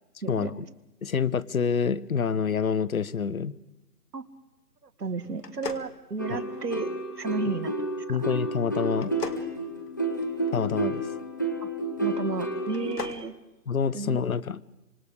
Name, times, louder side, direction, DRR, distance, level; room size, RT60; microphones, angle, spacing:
voice 1, 0.2-0.6 4.1-4.3 4.8-7.7 8.1-8.3 11.6-11.7 12.0-13.3 13.9-14.3, right 4 dB, 90° right, 9 dB, 2.0 m, -33 dB
voice 2, 1.0-3.5 6.3-6.4 8.1-9.1 10.5-11.1 13.7-14.6, left 6 dB, 65° left, 19 dB, 1.0 m, -27 dB
sound 1, 5.4-6.8 8.9-10.5 12.6-13.3, left 4 dB, 85° left, 2.3 m, -39 dB
sound 2, 6.2-12.9, right 1 dB, 15° left, 0.9 m, -31 dB
26.0 x 26.0 x 4.9 m, 0.99 s
figure-of-eight pair, 170°, 46 cm